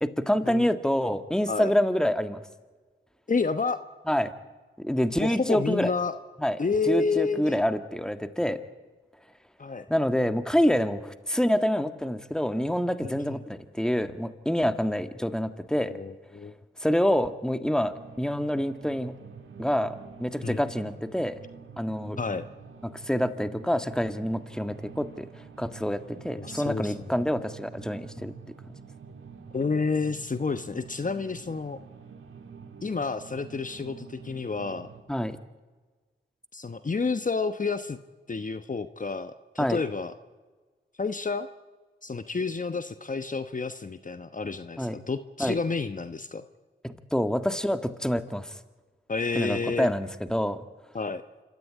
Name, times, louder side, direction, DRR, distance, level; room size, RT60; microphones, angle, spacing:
voice 1, 0.0-2.4 4.1-4.3 4.8-5.9 6.4-6.6 6.9-8.6 9.9-16.0 16.8-19.1 19.6-21.4 21.8-22.2 22.8-25.3 25.6-28.3 28.7-28.8 35.1-35.4 39.6-39.8 44.8-44.9 45.4-45.6 46.8-48.5 49.3-50.6, equal, 5° left, 10 dB, 1.8 m, -27 dB
voice 2, 3.3-3.8 5.2-6.1 6.6-7.6 9.6-9.9 13.0-13.4 15.8-16.5 20.4-20.6 22.2-22.5 26.3-26.9 29.5-31.8 32.8-34.9 36.5-38.0 38.3-40.1 41.0-41.5 42.0-46.4 49.1-49.9 50.9-51.2, left 4 dB, 40° left, 11 dB, 1.1 m, -30 dB
sound 1, 17.9-35.0, right 6 dB, 75° right, 2.3 m, -47 dB
26.5 x 14.0 x 9.7 m, 1.3 s
cardioid pair, 40°, 21 cm